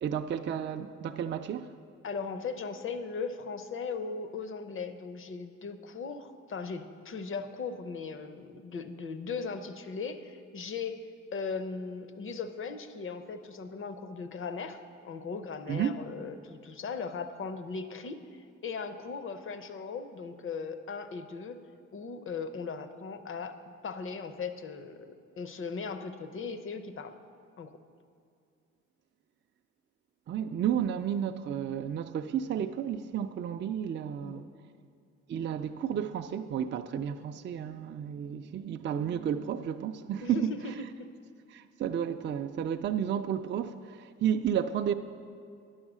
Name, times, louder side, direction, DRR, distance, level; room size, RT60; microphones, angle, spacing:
voice 1, 0.0-1.7 15.7-15.9 30.3-34.5 35.3-40.7 41.5-44.9, right 9 dB, 40° right, 0.4 m, -32 dB
voice 2, 2.0-11.0 11.3-14.8 15.0-21.6 21.9-23.6 23.8-25.1 25.4-27.1 27.6-27.7 34.2-34.4 40.2-40.4 41.0-41.1, left 5 dB, 45° left, 0.7 m, -38 dB
9.5 x 6.4 x 6.1 m
cardioid pair, 90°, 30 cm